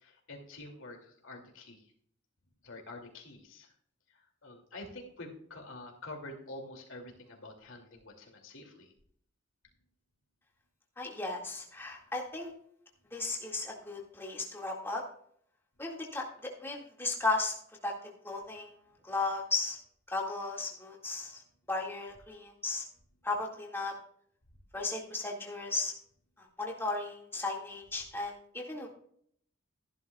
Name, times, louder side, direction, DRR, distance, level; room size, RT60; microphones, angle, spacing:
voice 1, 0.0-1.9 2.6-3.7 4.1-8.9, left 2 dB, 70° left, 2 dB, 2.6 m, -47 dB
voice 2, 11.0-12.5 13.1-15.0 15.8-17.5 17.8-17.9 18.2-18.7 19.0-19.8 20.1-21.4 21.7-22.8 23.2-23.9 24.7-25.9 26.4-28.9, left 3 dB, 10° left, -1 dB, 2.0 m, -35 dB
15.0 x 11.0 x 2.3 m, 0.65 s
head